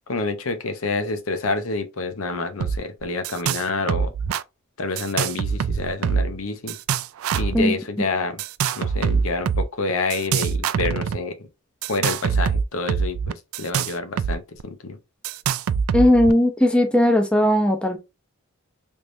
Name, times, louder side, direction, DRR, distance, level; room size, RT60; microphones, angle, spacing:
voice 1, 0.1-4.1 4.8-6.8 7.3-8.4 8.8-11.5 11.9-15.0, left 3 dB, 75° left, 0.8 m, -28 dB
sound 1, 2.6-2.8 3.0-3.6 3.9-4.4 5.0-6.4 6.7-7.6 8.4-9.6 10.1-11.2 11.8-14.3 14.6-14.7 15.2-16.3, right 6 dB, 80° right, 0.3 m, -24 dB
voice 2, 15.9-18.0, left 1 dB, 5° left, 0.6 m, -17 dB
3.5 x 3.2 x 2.6 m
head